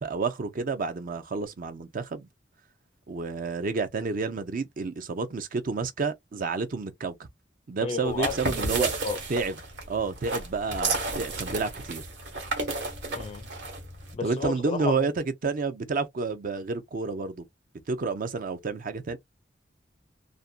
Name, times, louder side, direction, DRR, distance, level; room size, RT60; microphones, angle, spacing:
voice 1, 0.0-2.3 3.1-7.3 7.7-8.9 9.3-9.5 9.9-12.0 14.2-15.1 15.4-17.4 17.9-19.2, right 4 dB, 50° right, 0.5 m, -30 dB
voice 2, 7.8-8.3 8.7-9.2 13.1-13.5 14.1-15.1, left 5 dB, 35° left, 0.4 m, -32 dB
sound 1, 8.1-14.1, right 3 dB, 65° right, 1.1 m, -32 dB
2.5 x 2.2 x 2.3 m
head